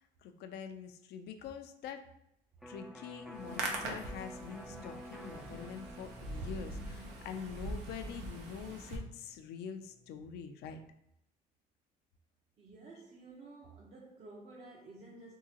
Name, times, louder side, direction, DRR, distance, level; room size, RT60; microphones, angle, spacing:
voice 1, 0.2-2.0 2.7-10.8, left 7 dB, 75° left, 0.5 m, -45 dB
Electric guitar, 2.6-10.3, equal, ahead, 0.3 m, -52 dB
Hands, 3.3-9.0, right 2 dB, 85° right, 0.7 m, -42 dB
voice 2, 12.6-15.3, right 2 dB, 40° right, 0.6 m, -52 dB
3.7 x 2.9 x 2.8 m
cardioid pair, 110°, 17 cm